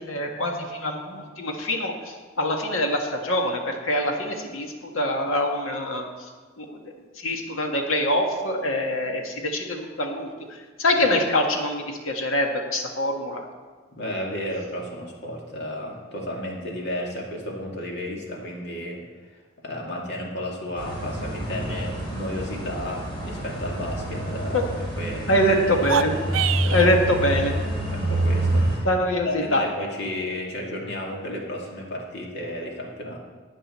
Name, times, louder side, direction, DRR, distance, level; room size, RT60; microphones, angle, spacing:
voice 1, 0.0-1.9 2.4-6.0 6.6-6.8 7.2-10.3 10.8-13.4 24.5-24.6 25.3-26.1 26.7-27.5 28.8-29.6, left 1 dB, 80° left, 2 dB, 1.6 m, -24 dB
voice 2, 13.9-19.0 19.6-24.7 25.0-25.3 26.6-26.9 27.2-27.3 27.9-28.9 29.2-33.2, left 1 dB, 55° left, -1 dB, 2.2 m, -33 dB
sound 1, 20.7-28.8, right 1 dB, 25° left, 3.7 m, -27 dB
sound 2, 25.7-26.9, right 8 dB, 70° right, 0.4 m, -26 dB
15.5 x 9.1 x 4.3 m, 1.5 s
head